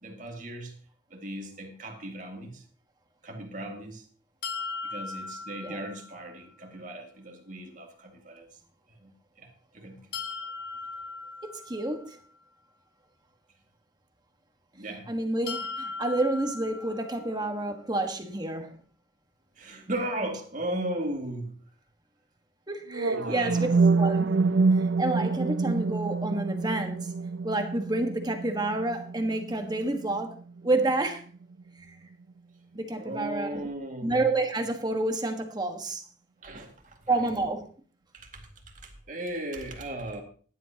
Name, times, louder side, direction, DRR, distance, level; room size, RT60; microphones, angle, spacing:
voice 1, 0.0-0.7 1.1-2.6 3.2-4.0 4.8-8.5 9.0-9.1 9.4-9.5 9.7-10.0 14.7-15.1 19.6-21.5 23.1-23.7 33.0-34.2 36.4-37.2 38.1-38.4 38.8-40.2, right 1 dB, 45° right, 3 dB, 2.2 m, -36 dB
sound 1, 4.4-6.4 10.1-12.2 15.5-17.5, left 4 dB, 65° left, 1.0 m, -38 dB
voice 2, 11.4-12.2 15.1-18.8 22.7-23.7 24.0-24.3 24.7-27.1 27.4-31.2 31.8-31.9 32.7-33.6 34.0-36.0 37.1-37.6, right 2 dB, 20° right, 5 dB, 1.5 m, -29 dB
sound 2, 22.9-30.9, right 4 dB, 85° right, 0.7 m, -27 dB
15.5 x 11.0 x 2.9 m, 0.43 s
head